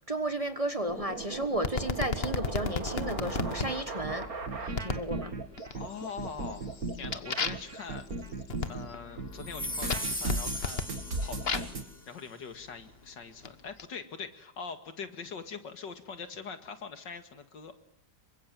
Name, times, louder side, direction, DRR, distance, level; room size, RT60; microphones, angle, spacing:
voice 1, 0.1-4.3 4.8-5.4, right 1 dB, 20° right, 9 dB, 1.2 m, -33 dB
sound 1, 0.9-8.9 9.2-11.8, right 3 dB, 55° right, 2.9 m, -36 dB
sound 2, 1.6-3.7 4.8-5.1 5.6-6.1 6.4-11.8 12.6-13.9, left 5 dB, 40° left, 1.3 m, -35 dB
voice 2, 5.7-8.3 8.7-10.9 11.2-17.8, left 5 dB, 85° left, 8 dB, 2.7 m, -43 dB
sound 3, 9.4-11.9, equal, 5° left, 2.8 m, -38 dB
27.5 x 24.5 x 7.7 m, 0.70 s
omnidirectional pair, 1.9 m